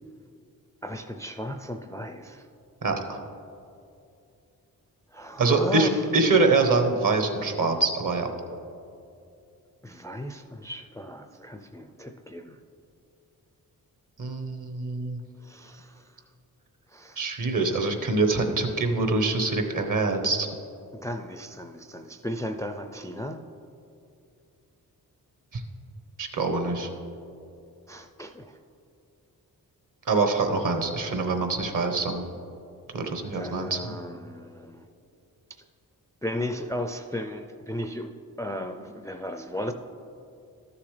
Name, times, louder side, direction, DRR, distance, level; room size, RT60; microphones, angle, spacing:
voice 1, 0.8-2.5 5.1-6.0 9.8-12.6 15.4-16.1 16.9-17.2 21.0-23.4 27.9-28.6 33.3-34.9 36.2-38.1 38.4-39.7, left 1 dB, 10° left, 6 dB, 0.4 m, -35 dB
voice 2, 2.8-3.2 5.4-8.3 14.2-15.2 17.2-20.5 25.5-25.6 26.2-26.9 30.1-32.2 32.9-33.9, right 3 dB, 60° right, 5 dB, 1.1 m, -24 dB
12.5 x 7.0 x 3.3 m, 2.6 s
cardioid pair, 65°, 37 cm